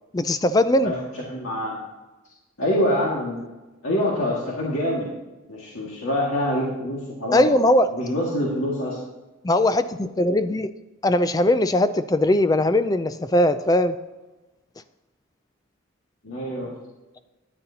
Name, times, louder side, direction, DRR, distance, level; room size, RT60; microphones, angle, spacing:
voice 1, 0.1-0.9 7.3-8.0 9.4-10.7 11.0-14.0, left 1 dB, 20° left, 12 dB, 0.3 m, -20 dB
voice 2, 1.3-1.8 2.6-3.5 3.8-5.1 5.5-7.5 7.9-9.0 16.2-16.7, left 1 dB, 75° left, -4 dB, 2.0 m, -25 dB
13.0 x 10.5 x 2.8 m, 1.1 s
head